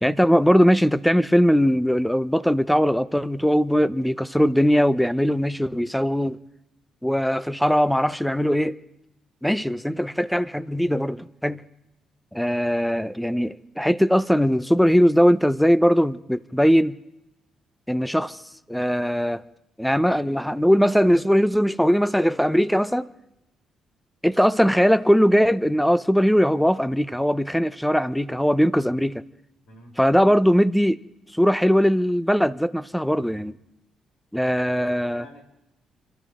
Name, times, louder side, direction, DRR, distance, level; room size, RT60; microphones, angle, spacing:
voice 1, 0.0-6.4 7.0-8.8 9.4-11.6 12.3-17.0 17.9-18.4 18.7-19.4 19.8-23.1 24.2-29.2 30.0-31.0 31.3-33.5 34.3-35.2, equal, 5° left, 0.9 m, -20 dB
voice 2, 34.4-35.4, left 1 dB, 75° left, 5.3 m, -48 dB
27.5 x 14.0 x 3.8 m
hypercardioid pair, 45°, 0 cm